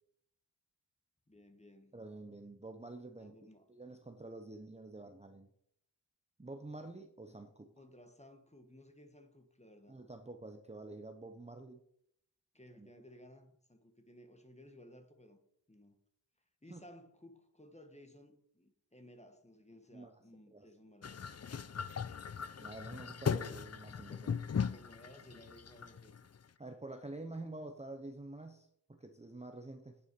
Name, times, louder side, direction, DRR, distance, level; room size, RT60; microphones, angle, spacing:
voice 1, 1.3-2.0 3.2-3.6 7.8-10.0 12.5-15.4 15.7-16.0 16.6-21.3 24.5-26.1, left 1 dB, 15° left, 1.5 m, -58 dB
voice 2, 1.9-3.4 3.7-5.5 6.4-7.7 9.9-11.8 12.8-12.9 16.7-16.8 19.9-20.2 20.5-20.7 22.6-24.4 26.6-30.0, right 2 dB, 15° right, 0.8 m, -48 dB
sound 1, 21.0-26.4, left 6 dB, 40° left, 0.5 m, -38 dB
9.3 x 7.0 x 5.3 m
wide cardioid pair, 60°, 41 cm